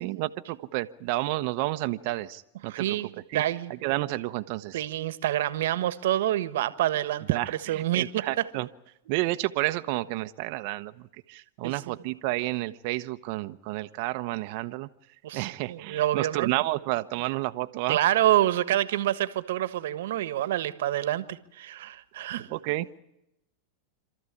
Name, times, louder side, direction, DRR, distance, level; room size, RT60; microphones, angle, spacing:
voice 1, 0.0-3.0 3.3-3.4 3.7-4.8 7.3-8.7 9.1-14.9 15.3-18.0 22.5-22.9, right 18 dB, 55° right, 0.9 m, -30 dB
voice 2, 2.7-3.7 4.7-7.4 7.7-8.2 11.6-12.0 15.2-16.5 17.9-22.5, right 13 dB, 75° right, 1.4 m, -27 dB
27.5 x 13.5 x 9.9 m
hypercardioid pair, 115°, 0 cm